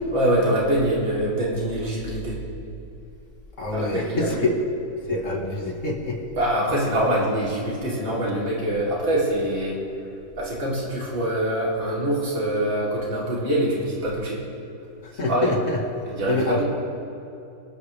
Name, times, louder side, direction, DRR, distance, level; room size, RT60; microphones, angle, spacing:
voice 1, 0.1-2.4 3.7-4.5 6.3-9.8 10.4-14.4 15.1-15.5 16.0-16.6, right 1 dB, 85° right, -5 dB, 4.0 m, -24 dB
voice 2, 3.6-4.5 5.1-6.2 15.2-15.8 16.3-16.6, left 2 dB, 40° left, 0 dB, 1.9 m, -25 dB
25.0 x 11.5 x 3.4 m, 2.7 s
omnidirectional pair, 2.1 m